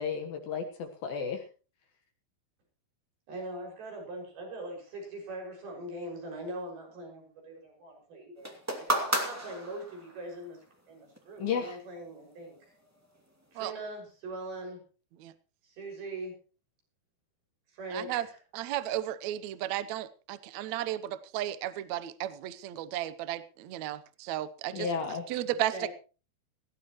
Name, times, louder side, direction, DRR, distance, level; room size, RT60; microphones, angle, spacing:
voice 1, 0.0-1.4 11.4-11.8 24.7-25.2, left 6 dB, 65° left, 4 dB, 3.0 m, -33 dB
voice 2, 3.3-10.6 10.9-12.6 13.5-14.8 15.6-16.3 17.7-18.4 24.7-25.0 25.7-25.9, right 1 dB, 70° right, 1 dB, 8.1 m, -41 dB
sound 1, 8.4-10.2 11.2-11.3, right 1 dB, 5° right, 1.4 m, -32 dB
voice 3, 17.9-18.3 18.5-24.9 25.3-25.9, right 13 dB, 90° right, 13 dB, 1.5 m, -34 dB
18.0 x 17.0 x 3.1 m, 0.36 s
omnidirectional pair, 4.6 m